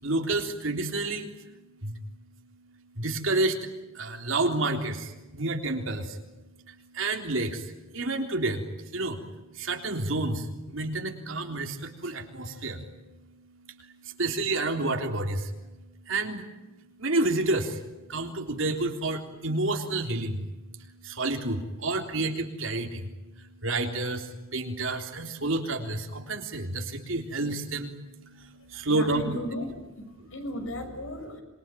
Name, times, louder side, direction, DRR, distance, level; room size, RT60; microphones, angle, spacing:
voice 1, 0.0-1.3 1.8-1.9 3.0-6.2 6.7-8.7 8.9-9.2 9.5-12.8 14.0-15.5 16.1-16.5 17.0-17.8 18.1-20.5 21.0-23.1 23.6-29.2, right 2 dB, 70° right, 4 dB, 3.6 m, -29 dB
voice 2, 28.6-29.7 30.0-31.4, left 1 dB, 70° left, 6 dB, 6.0 m, -36 dB
27.0 x 23.0 x 9.2 m, 1.1 s
head